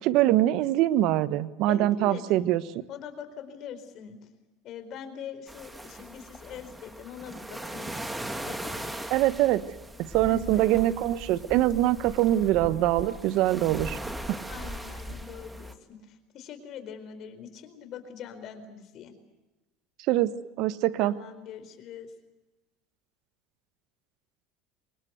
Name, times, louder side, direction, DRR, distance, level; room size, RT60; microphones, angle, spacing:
voice 1, 0.0-2.6 9.1-9.6 10.0-14.0 14.3-14.4 20.1-20.3 20.6-21.1, right 14 dB, 65° right, 14 dB, 1.3 m, -23 dB
voice 2, 1.7-2.2 2.9-4.2 4.6-7.9 8.5-8.9 10.3-10.7 14.5-19.1 21.0-22.1, left 8 dB, 50° left, 9 dB, 4.4 m, -42 dB
sound 1, 5.5-15.7, right 1 dB, 10° right, 2.4 m, -39 dB
24.5 x 20.5 x 8.2 m, 1.1 s
supercardioid pair, 100°, 0 cm